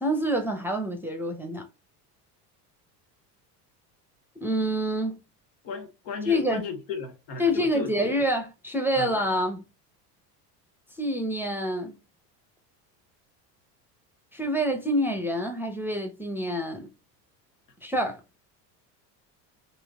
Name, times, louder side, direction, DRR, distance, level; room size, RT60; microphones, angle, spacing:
voice 1, 0.0-1.7 4.4-5.2 6.3-6.6 7.4-9.6 11.0-11.9 14.3-16.9 17.8-18.2, equal, 5° right, 0.5 m, -27 dB
voice 2, 5.6-8.1 8.9-9.1, left 5 dB, 80° left, 1.2 m, -35 dB
3.1 x 2.8 x 2.2 m
hypercardioid pair, 85°, 48 cm